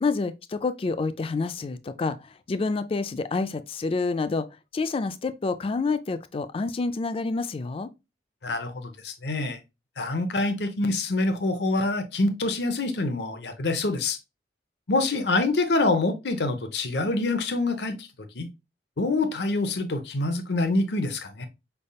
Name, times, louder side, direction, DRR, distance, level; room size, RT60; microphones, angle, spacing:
voice 1, 0.0-4.5 4.7-7.9, left 3 dB, 30° left, 0.3 m, -28 dB
voice 2, 8.4-9.6 10.0-14.2 14.9-18.1 18.3-18.5 19.0-21.5, left 2 dB, 70° left, 0.8 m, -26 dB
5.3 x 3.4 x 2.2 m
head